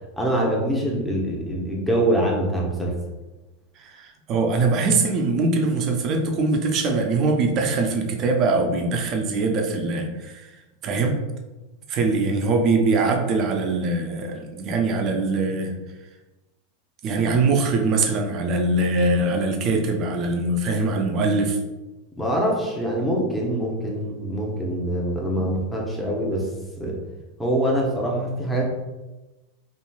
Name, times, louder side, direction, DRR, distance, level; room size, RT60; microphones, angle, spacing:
voice 1, 0.2-2.9 22.2-26.5 26.8-27.0 27.4-28.7, right 1 dB, 5° left, -3 dB, 0.7 m, -24 dB
voice 2, 3.8-10.5 10.8-11.2 11.9-15.7 17.0-21.6 25.4-25.5, right 3 dB, 45° right, 4 dB, 0.4 m, -22 dB
3.0 x 2.5 x 2.3 m, 1.1 s
hypercardioid pair, 95°, 0 cm